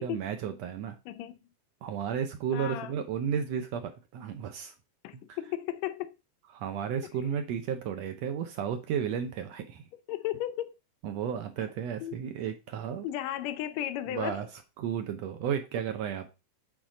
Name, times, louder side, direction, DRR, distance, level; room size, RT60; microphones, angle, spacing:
voice 1, 0.0-1.0 1.8-4.7 5.3-5.4 6.5-9.8 11.0-13.1 14.1-14.5 14.8-16.3, right 8 dB, 75° right, 1.6 m, -33 dB
voice 2, 1.0-1.4 2.5-2.9 5.0-6.1 10.1-10.8 12.0-12.1 13.0-14.5, left 12 dB, 80° left, 1.6 m, -34 dB
8.8 x 3.7 x 5.0 m
omnidirectional pair, 3.8 m